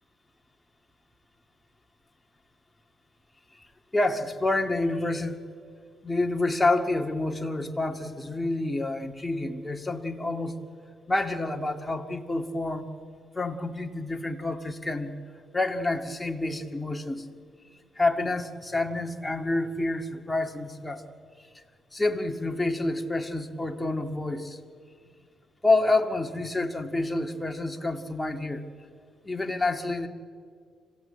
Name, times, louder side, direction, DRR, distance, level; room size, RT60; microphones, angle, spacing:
voice 1, 3.9-5.4 6.0-10.6 11.1-12.9 13.4-15.2 15.5-17.3 18.0-21.0 21.5-21.6 21.9-24.6 25.6-28.7 29.2-30.1, left 2 dB, 10° left, 4 dB, 1.9 m, -28 dB
26.0 x 16.5 x 9.0 m, 2.1 s
cardioid pair, 90°, 0 cm